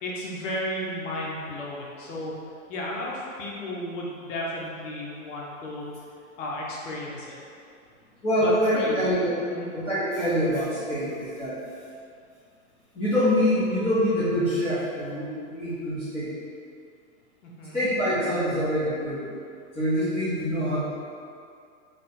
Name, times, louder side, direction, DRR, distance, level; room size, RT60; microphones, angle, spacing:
voice 1, 0.0-2.3 2.7-5.9 6.4-7.4 8.4-9.0 9.5-9.7 17.4-17.8, left 1 dB, 60° left, -3 dB, 1.0 m, -33 dB
voice 2, 8.2-9.3 9.7-11.6 12.9-16.3 17.7-19.3 19.7-20.9, equal, 15° left, -15 dB, 1.1 m, -25 dB
3.4 x 2.5 x 4.2 m, 2.4 s
hypercardioid pair, 145°, 41 cm